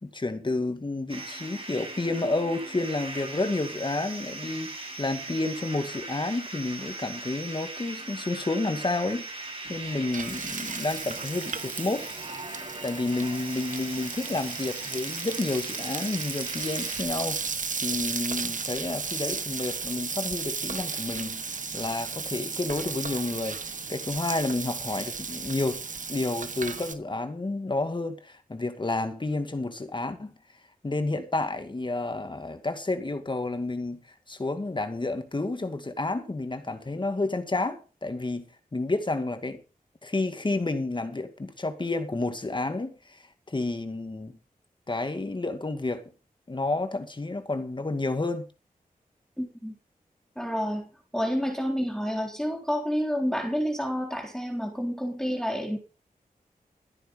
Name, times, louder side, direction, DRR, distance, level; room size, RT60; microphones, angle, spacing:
voice 1, 0.0-9.3 9.7-12.1 12.8-17.4 17.8-25.8 26.1-30.3 30.8-34.0 34.3-38.5 38.7-39.6 40.0-44.4 44.9-46.0 46.5-48.5, left 2 dB, 30° left, 2.2 m, -30 dB
sound 1, 1.1-17.0, right 2 dB, 40° right, 6.3 m, -39 dB
Frying (food), 9.7-26.9, right 5 dB, 60° right, 1.4 m, -35 dB
voice 2, 49.4-49.7 50.4-55.8, equal, 5° left, 3.8 m, -29 dB
14.0 x 9.5 x 5.4 m
wide cardioid pair, 115°, 15 cm